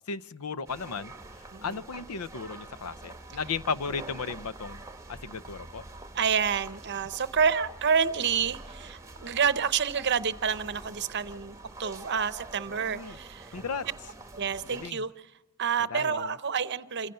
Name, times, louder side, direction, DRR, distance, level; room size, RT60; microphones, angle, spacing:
voice 1, 0.1-4.8 5.1-5.8 12.9-13.2 13.5-13.9 14.7-15.0 15.9-16.3, left 5 dB, 90° left, 15 dB, 0.6 m, -35 dB
Thailand Chiang Mai market int light calm mellow, 0.7-14.9, right 2 dB, 15° right, 1.1 m, -46 dB
voice 2, 6.1-13.6 14.4-15.1 15.6-17.1, right 6 dB, 50° right, 14 dB, 0.7 m, -28 dB
26.5 x 16.0 x 6.7 m, 1.1 s
head